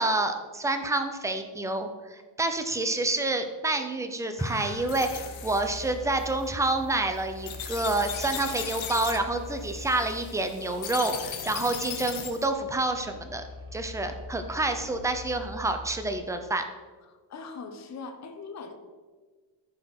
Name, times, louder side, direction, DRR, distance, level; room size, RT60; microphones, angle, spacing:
voice 1, 0.0-13.4 13.7-16.6, right 2 dB, 5° right, 7 dB, 0.7 m, -28 dB
sound 1, 4.4-12.5, left 8 dB, 70° left, 1.5 m, -38 dB
sound 2, 4.7-16.2, left 2 dB, 40° right, 2.5 m, -44 dB
voice 2, 17.1-18.7, left 4 dB, 35° left, 5 dB, 1.0 m, -41 dB
14.0 x 4.7 x 6.0 m, 1.4 s
cardioid pair, 160°, 49 cm